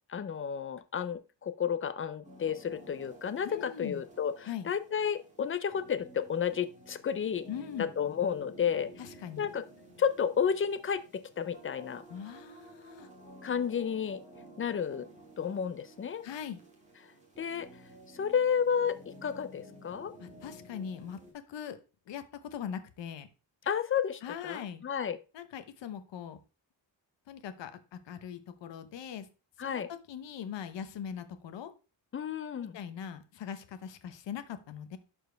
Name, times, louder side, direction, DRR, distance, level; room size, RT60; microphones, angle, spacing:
voice 1, 0.1-7.5 7.8-8.9 9.4-9.6 10.0-12.0 13.4-14.2 14.6-15.1 15.4-16.2 17.4-17.7 18.1-20.1 23.7-25.2 29.6-29.9 32.1-32.8, left 7 dB, 30° left, 12 dB, 0.5 m, -32 dB
sound 1, 2.2-21.3, right 1 dB, 15° right, 1.9 m, -53 dB
voice 2, 3.4-4.0 4.4-4.7 7.5-7.9 9.0-9.5 12.1-13.1 16.2-16.6 20.2-21.8 22.1-23.3 24.2-24.8 25.3-26.4 27.3-29.3 29.6-29.8 30.1-31.7 32.7-35.0, left 8 dB, 75° left, 10 dB, 1.0 m, -41 dB
11.5 x 4.5 x 3.4 m, 0.33 s
wide cardioid pair, 165°, 44 cm